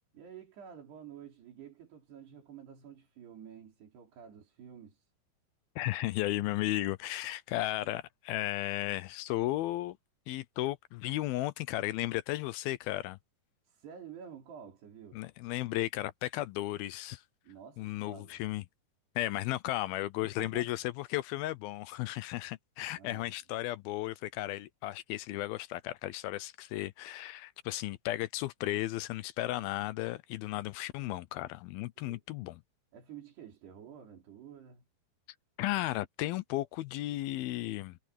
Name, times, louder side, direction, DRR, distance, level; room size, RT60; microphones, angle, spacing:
voice 1, 0.1-5.1 13.7-15.2 17.4-18.4 20.2-20.7 22.9-23.3 32.0-32.2 32.9-34.8, right 8 dB, 85° right, 6.1 m, -50 dB
voice 2, 5.8-10.0 10.3-13.2 15.1-17.2 17.8-18.6 19.2-32.6 35.6-38.0, left 16 dB, 80° left, 2.4 m, -34 dB
omnidirectional pair, 4.6 m